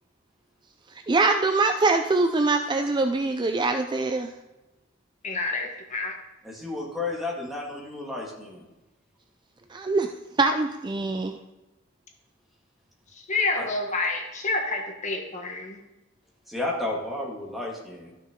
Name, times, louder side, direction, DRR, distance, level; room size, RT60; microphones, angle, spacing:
voice 1, 1.1-4.3 9.7-10.1 10.4-11.4, right 3 dB, 25° right, 6 dB, 0.4 m, -23 dB
voice 2, 5.2-6.1 13.3-15.8, left 3 dB, 40° left, 2 dB, 1.4 m, -28 dB
voice 3, 6.4-8.7 13.5-13.6 16.5-18.1, left 2 dB, ahead, -3 dB, 2.0 m, -32 dB
12.5 x 6.5 x 3.7 m, 1.0 s
head